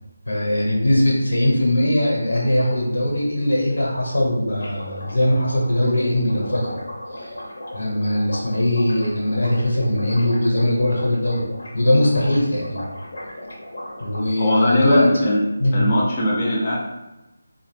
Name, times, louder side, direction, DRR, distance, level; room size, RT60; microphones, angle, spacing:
voice 1, 0.3-6.8 7.1-7.3 7.7-11.5 11.7-12.9 14.0-15.2 15.6-15.9, left 1 dB, 90° left, -2 dB, 1.0 m, -20 dB
sound 1, 3.4-3.5 3.7-3.8 4.0-14.3, left 1 dB, 65° left, 0.7 m, -36 dB
voice 2, 14.4-15.4 15.7-16.8, left 1 dB, 20° left, -5 dB, 0.3 m, -20 dB
2.7 x 2.0 x 3.2 m, 1.0 s
figure-of-eight pair, 175°, 0 cm